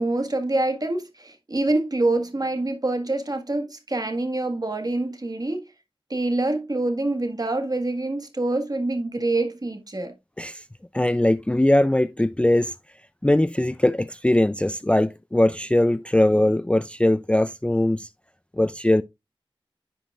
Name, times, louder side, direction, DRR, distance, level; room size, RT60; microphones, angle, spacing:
voice 1, 0.0-5.6 6.1-10.1, right 2 dB, 45° right, 1.6 m, -26 dB
voice 2, 10.9-12.7 13.2-18.1 18.6-19.0, left 1 dB, 10° left, 0.3 m, -21 dB
10.0 x 5.7 x 2.4 m
wide cardioid pair, 55°, 9 cm